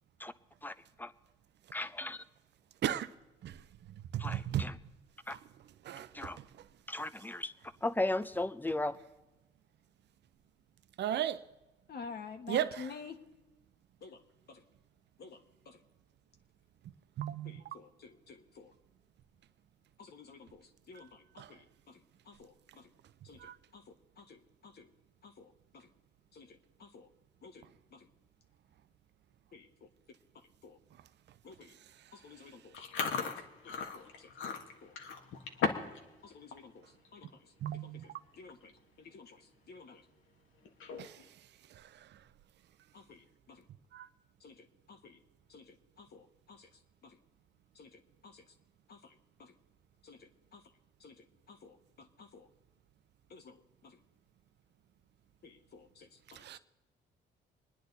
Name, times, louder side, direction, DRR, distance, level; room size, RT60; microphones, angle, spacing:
voice 1, 0.6-1.1 1.7-2.2 4.2-4.8 5.3-5.4 6.1-6.4 6.9-9.0, left 2 dB, 10° left, 0.6 m, -36 dB
voice 2, 4.1-4.6 5.8-6.3 11.0-11.4 12.5-12.7 17.2-17.6 21.4-21.5 23.4-23.5 37.6-38.0 41.0-41.2 41.8-41.9 43.9-44.1 56.4-56.6, right 11 dB, 60° right, 0.6 m, -35 dB
voice 3, 11.9-13.2 14.0-14.2 14.5-14.6 15.2-15.8 17.4-18.7 20.0-22.9 23.2-24.9 25.2-25.9 26.3-27.1 27.4-28.1 29.5-30.8 31.4-31.8 32.1-35.0 36.2-40.1 42.9-43.7 44.4-45.2 45.5-47.2 47.7-48.6 48.9-49.6 50.0-50.7 51.0-52.5 53.3-54.0 55.4-56.6, left 5 dB, 55° left, 1.3 m, -53 dB
Chewing mastication, 32.7-36.0 36.3-36.6 37.0-37.3 38.0-38.1 38.3-38.7 39.1-39.2 40.6-41.2, left 5 dB, 75° left, 1.5 m, -36 dB
25.5 x 9.9 x 4.0 m
cardioid pair, 90°, 20 cm